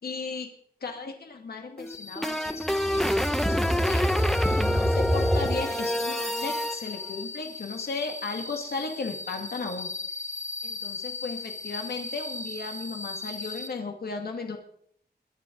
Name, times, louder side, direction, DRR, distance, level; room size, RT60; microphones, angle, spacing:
voice 1, 0.0-0.5 0.8-3.1 3.5-4.1 4.6-9.9 10.6-14.6, left 4 dB, 70° left, 3 dB, 2.2 m, -35 dB
sound 1, 1.8-6.7, equal, 5° left, 0.8 m, -25 dB
sound 2, 1.9-13.7, left 3 dB, 45° left, 2.0 m, -39 dB
22.5 x 10.5 x 4.0 m, 0.64 s
wide cardioid pair, 145°, 16 cm